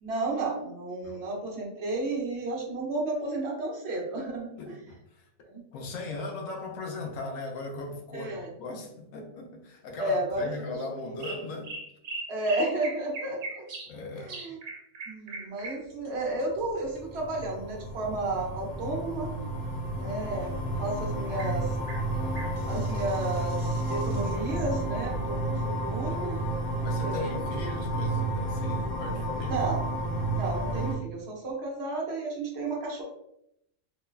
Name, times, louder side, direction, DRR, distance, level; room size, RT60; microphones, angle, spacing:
voice 1, 0.0-4.8 5.4-5.6 8.1-8.5 10.0-10.5 11.1-11.2 12.3-13.6 14.1-14.6 15.1-19.4 19.9-21.7 22.7-26.4 26.8-27.2 29.4-29.8 30.3-33.0, right 2 dB, 60° right, -1 dB, 0.9 m, -32 dB
voice 2, 4.6-5.2 5.7-11.7 13.9-14.3 26.8-29.6, left 2 dB, 80° left, 2 dB, 1.0 m, -38 dB
sound 1, 10.7-10.9 11.2-13.9 14.3-17.5 20.9-21.0 21.4-21.6 21.9-24.7 27.7-27.8 28.5-28.6, right 2 dB, 85° right, 1.1 m, -41 dB
sound 2, 16.6-31.0, right 1 dB, 50° left, 0.4 m, -31 dB
3.1 x 2.1 x 2.3 m, 0.75 s
omnidirectional pair, 1.4 m